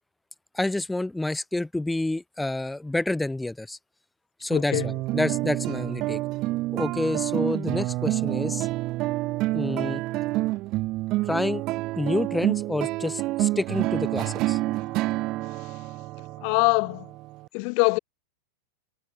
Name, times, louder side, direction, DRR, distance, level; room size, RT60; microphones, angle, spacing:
voice 1, 0.5-3.8 4.4-6.2 6.7-8.7 9.5-10.0 11.3-11.6 12.0-14.6, left 2 dB, 5° left, 2.7 m, -28 dB
voice 2, 4.5-4.9 16.4-17.1 17.5-18.0, left 40 dB or more, 50° left, 2.3 m, -23 dB
sound 1, 4.7-17.5, right 19 dB, 40° right, 2.9 m, -28 dB
figure-of-eight pair, 90°, 0 cm